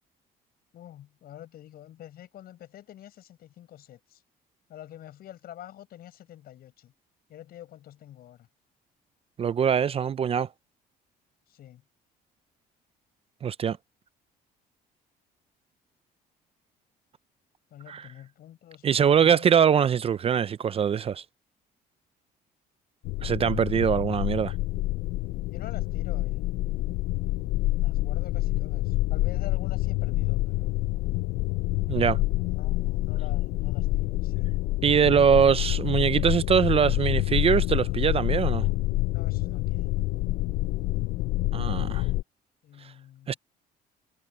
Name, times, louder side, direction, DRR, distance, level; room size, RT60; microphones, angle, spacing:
voice 1, 0.7-4.2 4.7-6.9 7.3-8.5 11.5-11.8 17.7-19.7 25.5-26.4 27.8-30.8 32.5-34.5 39.1-40.0 42.6-43.4, left 12 dB, 65° left, 7.5 m, -47 dB
voice 2, 9.4-10.5 13.4-13.8 17.9-18.0 18.8-21.2 23.2-24.5 31.9-32.2 34.8-38.6 41.5-42.0 43.3-43.4, right 7 dB, 35° right, 0.5 m, -22 dB
sound 1, 23.0-42.2, left 18 dB, 85° left, 0.5 m, -27 dB
cardioid pair, 110°, 17 cm